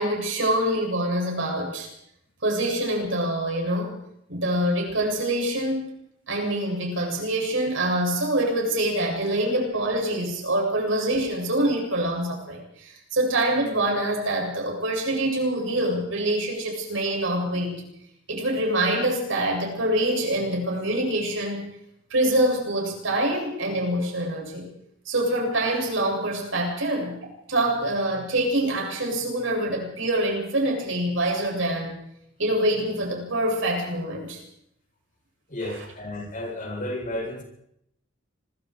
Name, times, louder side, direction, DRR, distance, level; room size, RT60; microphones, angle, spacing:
voice 1, 0.0-1.9 2.4-4.0 4.3-5.9 6.3-17.8 18.3-21.7 22.1-24.7 25.1-32.0 32.4-34.4 35.6-35.7, right 1 dB, 70° right, 1 dB, 8.0 m, -25 dB
voice 2, 35.5-37.4, left 1 dB, 40° left, 1 dB, 7.6 m, -32 dB
25.5 x 23.0 x 5.0 m, 0.76 s
head